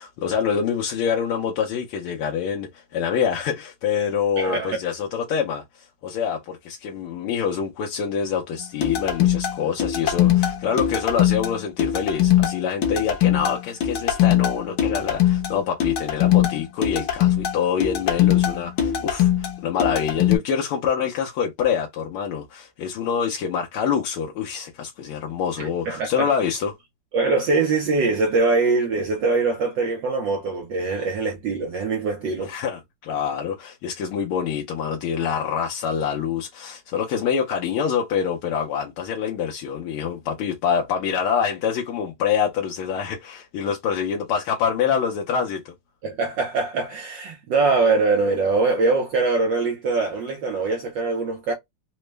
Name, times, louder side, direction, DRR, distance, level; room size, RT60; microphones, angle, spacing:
voice 1, 0.0-26.8 32.5-45.7, left 7 dB, 80° left, 1.6 m, -26 dB
voice 2, 4.4-4.8 25.6-26.3 27.1-32.5 46.0-51.5, right 3 dB, 65° right, 1.3 m, -23 dB
sound 1, 8.8-20.4, left 11 dB, 60° left, 1.3 m, -21 dB
4.0 x 2.1 x 3.2 m
omnidirectional pair, 2.4 m